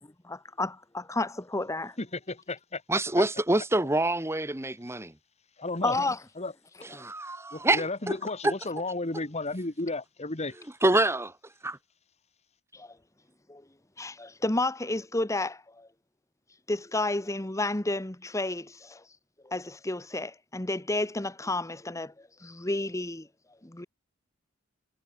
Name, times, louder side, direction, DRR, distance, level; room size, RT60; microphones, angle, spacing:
voice 1, 0.2-1.9 5.8-6.2 12.7-13.0 13.5-13.6 14.0-15.9 16.7-19.0 19.4-23.3 23.6-23.8, left 2 dB, 15° left, 1.1 m, -31 dB
voice 2, 2.0-2.8 5.6-6.0 6.4-6.5 7.7-10.5, left 2 dB, 30° left, 2.0 m, -33 dB
voice 3, 2.9-5.1 7.0-8.2 8.4-8.5 10.8-11.3 11.6-11.8, right 2 dB, 10° right, 1.3 m, -26 dB
head